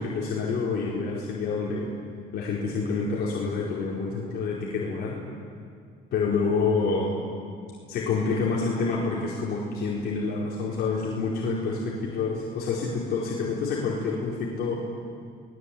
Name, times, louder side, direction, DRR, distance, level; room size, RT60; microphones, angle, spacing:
voice 1, 0.0-1.9 2.3-5.2 6.1-7.2 7.9-14.7, left 4 dB, 70° left, -4 dB, 4.7 m, -28 dB
26.5 x 20.0 x 8.7 m, 2.2 s
cardioid pair, 110°, 17 cm